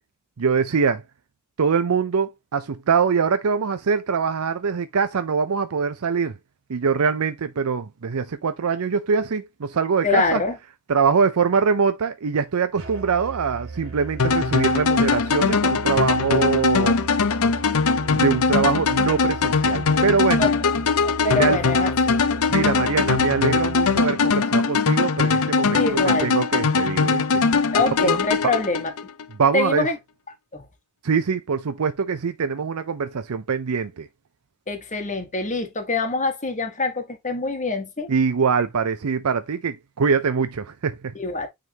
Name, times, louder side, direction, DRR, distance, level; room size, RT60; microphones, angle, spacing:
voice 1, 0.4-1.0 1.6-6.4 6.7-10.4 10.9-17.0 17.4-17.5 17.9-20.5 21.3-21.6 22.5-27.4 28.0-28.2 29.4-29.9 31.0-34.1 38.1-41.1, right 5 dB, 80° right, 0.5 m, -23 dB
voice 2, 10.0-10.6 20.4-20.5 21.0-22.2 25.7-26.3 27.7-28.9 29.5-30.0 30.5-30.6 34.7-38.1 41.1-41.5, left 3 dB, 35° left, 1.4 m, -24 dB
Musical instrument, 12.7-24.5, right 5 dB, 65° right, 2.6 m, -37 dB
sound 1, 14.2-29.3, left 4 dB, 70° left, 0.6 m, -21 dB
9.3 x 3.6 x 2.9 m
head